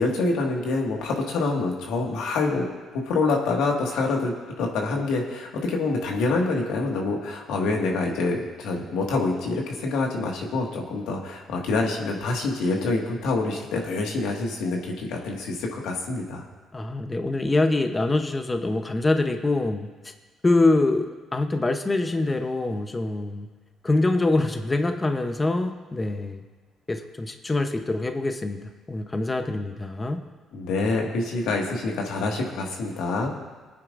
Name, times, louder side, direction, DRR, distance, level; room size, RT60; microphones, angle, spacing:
voice 1, 0.0-2.7 2.9-16.4 30.5-33.4, left 3 dB, 85° left, 0 dB, 1.8 m, -26 dB
voice 2, 16.7-19.9 20.4-23.5 23.8-26.4 26.9-30.2, left 2 dB, 20° left, 6 dB, 0.8 m, -24 dB
21.5 x 9.4 x 2.6 m, 1.3 s
cardioid pair, 80°, 0 cm